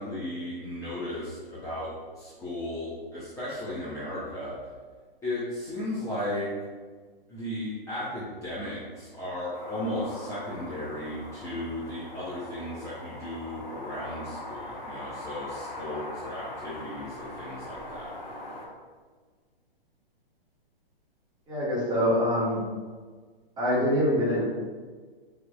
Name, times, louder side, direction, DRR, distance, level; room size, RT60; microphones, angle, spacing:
voice 1, 0.0-4.6 5.2-6.5 7.3-18.1, left 1 dB, 10° left, -10 dB, 0.9 m, -35 dB
sound 1, 9.5-18.7, left 1 dB, 45° left, 1.5 m, -41 dB
voice 2, 21.5-22.6 23.6-24.4, equal, 15° right, -7 dB, 1.5 m, -24 dB
5.5 x 3.6 x 2.4 m, 1.5 s
hypercardioid pair, 130°, 29 cm